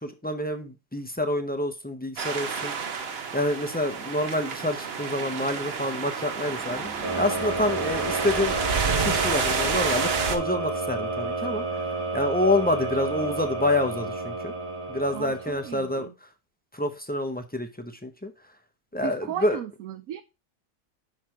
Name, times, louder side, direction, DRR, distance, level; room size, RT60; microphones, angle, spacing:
voice 1, 0.0-2.7 3.3-6.9 7.1-8.6 9.0-11.8 12.1-14.5 14.9-16.1 16.7-18.3 18.9-19.6, left 1 dB, 10° left, 0.4 m, -27 dB
sound 1, 2.2-10.4, right 5 dB, 50° right, 1.0 m, -29 dB
sound 2, 6.2-10.8, right 1 dB, 5° right, 1.4 m, -45 dB
sound 3, 7.0-15.9, right 2 dB, 25° right, 1.3 m, -31 dB
voice 2, 15.1-16.1 19.0-20.2, right 10 dB, 75° right, 1.0 m, -36 dB
6.0 x 5.1 x 4.6 m
omnidirectional pair, 1.5 m